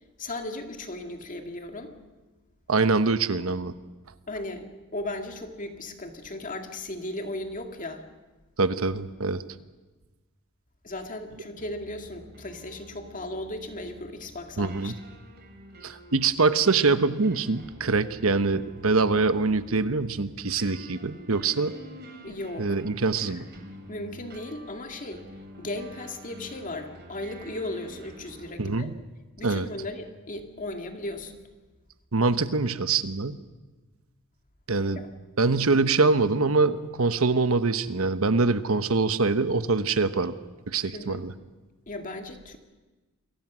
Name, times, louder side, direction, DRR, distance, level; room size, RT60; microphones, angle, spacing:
voice 1, 0.2-2.0 4.3-8.1 10.8-14.9 22.2-22.8 23.2-23.4 23.9-25.3 25.6-28.9 29.4-31.4 35.0-35.1 40.9-41.3 41.9-42.6, left 1 dB, 40° left, 5 dB, 2.2 m, -36 dB
voice 2, 2.7-3.7 8.6-9.4 14.6-14.9 15.8-21.7 22.6-23.5 28.6-28.9 29.4-29.7 32.1-33.4 34.7-35.0 35.4-40.3 40.7-41.3, right 3 dB, 70° right, 12 dB, 1.0 m, -24 dB
sound 1, 11.6-28.5, equal, 50° right, 3.4 m, -48 dB
28.0 x 23.0 x 6.2 m, 1.2 s
head